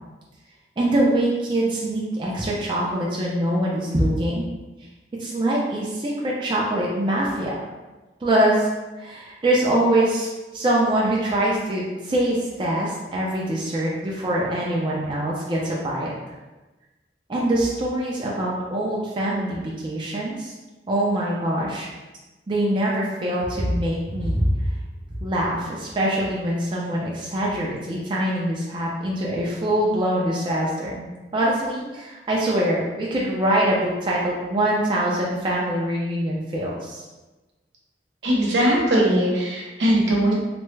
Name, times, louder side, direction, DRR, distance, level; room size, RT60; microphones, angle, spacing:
voice 1, 0.8-4.5 5.2-7.5 8.2-8.7 9.0-16.4 17.3-20.5 20.9-21.9 22.5-24.7 25.2-31.1 31.3-37.1, right 1 dB, 25° right, -5 dB, 0.4 m, -24 dB
voice 2, 38.2-40.3, right 1 dB, 75° right, -3 dB, 0.9 m, -20 dB
3.3 x 2.1 x 3.1 m, 1.1 s
head